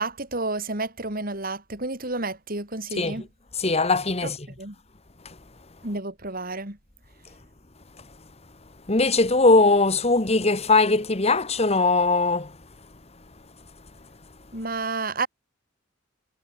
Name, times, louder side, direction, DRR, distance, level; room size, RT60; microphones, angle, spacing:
voice 1, 0.0-3.3 4.2-4.3 4.6-4.8 5.8-6.8 14.5-15.3, right 3 dB, 45° right, 5.3 m, -30 dB
voice 2, 3.6-4.5 8.9-12.5, left 3 dB, 30° left, 1.6 m, -20 dB
head